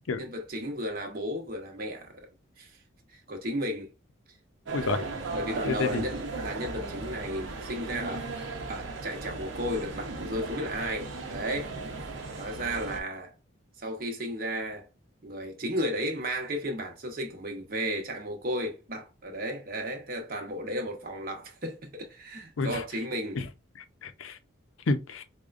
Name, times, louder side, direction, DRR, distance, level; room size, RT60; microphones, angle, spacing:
voice 1, 0.2-2.3 2.6-2.7 3.1-3.9 4.9-6.2 6.4-8.3 8.7-11.7 12.4-13.3 13.8-14.9 15.2-23.4, equal, 45° right, 0.9 m, -34 dB
sound 1, 4.7-13.0, right 3 dB, 75° right, 0.7 m, -37 dB
voice 2, 5.6-6.0 22.6-22.8 23.4-23.5 23.8-24.4 24.9-25.2, left 3 dB, 85° left, 0.5 m, -30 dB
4.9 x 2.2 x 2.4 m
head